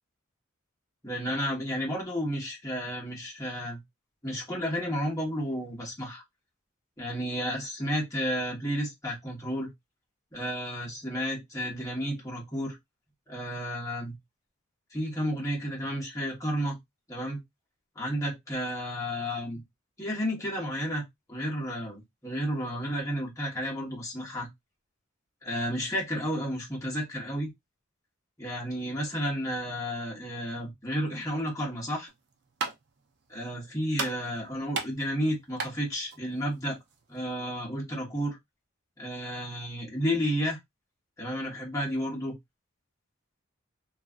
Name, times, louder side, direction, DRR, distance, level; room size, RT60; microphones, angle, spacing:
voice 1, 1.0-3.8 4.2-6.2 7.0-9.7 10.3-12.8 13.3-14.2 14.9-16.7 17.1-17.4 18.0-19.6 20.0-21.0 21.3-24.5 25.4-27.5 28.4-32.1 33.3-36.8 37.1-38.4 39.0-40.6 41.2-42.3, equal, 15° left, 1.0 m, -32 dB
sound 1, 32.1-37.4, right 4 dB, 60° right, 0.5 m, -38 dB
3.1 x 2.5 x 2.3 m
head